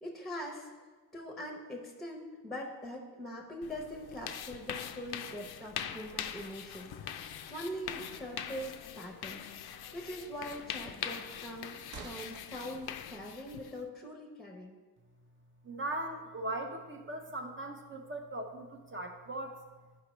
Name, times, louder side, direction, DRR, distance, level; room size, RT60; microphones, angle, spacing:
voice 1, 0.0-0.7 1.1-14.8, equal, ahead, 1 dB, 0.7 m, -43 dB
sound 1, 3.6-13.8, left 9 dB, 80° left, 0.5 m, -43 dB
sound 2, 7.8-12.8, right 3 dB, 65° right, 0.8 m, -54 dB
voice 2, 15.6-19.6, right 2 dB, 35° right, 3 dB, 0.6 m, -39 dB
12.0 x 5.1 x 3.1 m, 1.4 s
wide cardioid pair, 170°, 38 cm